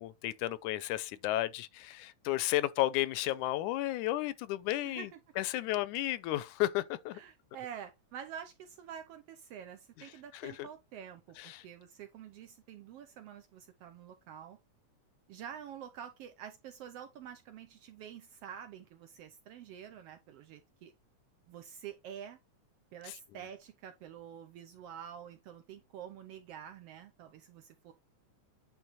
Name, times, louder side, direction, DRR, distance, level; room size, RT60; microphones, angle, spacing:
voice 1, 0.0-5.1 5.4-7.2 10.3-10.7 11.4-11.7 23.1-23.2, left 15 dB, 85° left, 2.0 m, -33 dB
voice 2, 4.8-5.2 7.1-14.6 15.3-20.9 21.5-22.4 22.9-27.9, right 9 dB, 85° right, 1.3 m, -48 dB
9.2 x 3.9 x 4.1 m
omnidirectional pair, 3.5 m